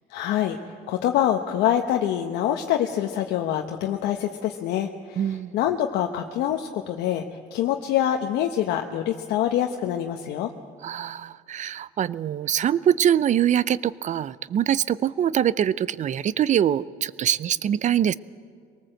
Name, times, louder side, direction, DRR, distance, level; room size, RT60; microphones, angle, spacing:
voice 1, 0.1-0.6 0.9-5.2 5.5-7.2 7.5-10.5, left 11 dB, 85° left, 3 dB, 1.1 m, -25 dB
voice 2, 5.2-5.5 10.8-18.1, right 10 dB, 45° right, 19 dB, 0.5 m, -23 dB
23.0 x 19.0 x 7.8 m, 2.1 s
cardioid pair, 110°, 17 cm